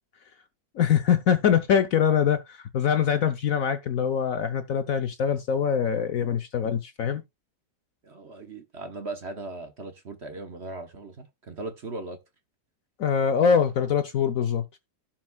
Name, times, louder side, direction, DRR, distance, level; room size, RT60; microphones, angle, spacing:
voice 1, 0.8-7.2 13.0-14.6, left 7 dB, 60° left, 1.0 m, -23 dB
voice 2, 8.0-12.2, right 2 dB, 45° right, 1.2 m, -38 dB
16.0 x 5.9 x 2.3 m
omnidirectional pair, 1.9 m